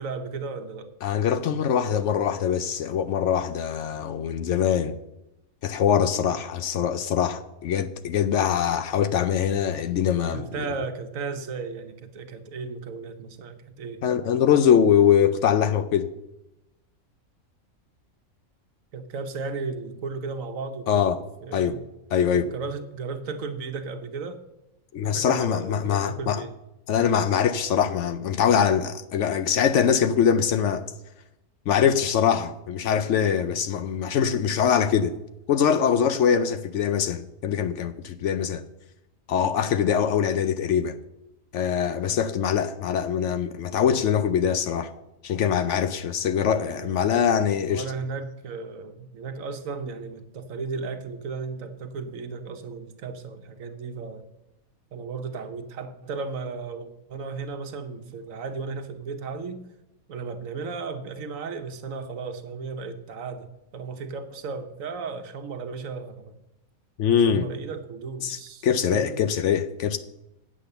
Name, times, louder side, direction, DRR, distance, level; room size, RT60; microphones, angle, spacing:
voice 1, 0.0-0.9 10.3-14.0 18.9-21.8 22.3-24.4 25.0-26.5 46.5-54.3 54.9-59.6 60.1-66.4 67.2-69.3, right 4 dB, 70° right, 1.3 m, -35 dB
voice 2, 1.0-5.0 5.6-10.7 14.0-16.1 20.9-21.2 21.5-21.8 22.1-22.5 24.9-26.4 26.9-30.9 31.7-35.2 35.5-38.6 39.3-41.0 41.5-44.9 45.2-47.8 67.0-67.5 68.2-68.4 68.6-70.0, left 8 dB, 65° left, 0.8 m, -23 dB
8.7 x 7.6 x 6.7 m
omnidirectional pair, 1.5 m